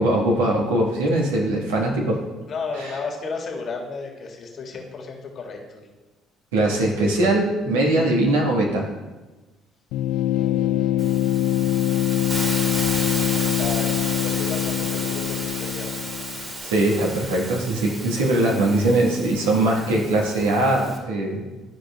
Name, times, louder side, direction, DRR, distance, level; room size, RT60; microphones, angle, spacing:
voice 1, 0.0-2.2 2.8-3.0 6.5-8.9 16.6-21.5, right 1 dB, 85° right, -2 dB, 1.3 m, -21 dB
voice 2, 2.5-5.9 10.3-11.2 13.5-13.9 14.2-15.9, left 4 dB, 50° left, 0 dB, 1.6 m, -33 dB
sound 1, 9.9-16.5, left 12 dB, 70° left, 0.4 m, -23 dB
Hiss, 11.0-21.0, right 1 dB, 30° right, 2.1 m, -33 dB
12.0 x 4.9 x 2.2 m, 1.2 s
hypercardioid pair, 55°, 0 cm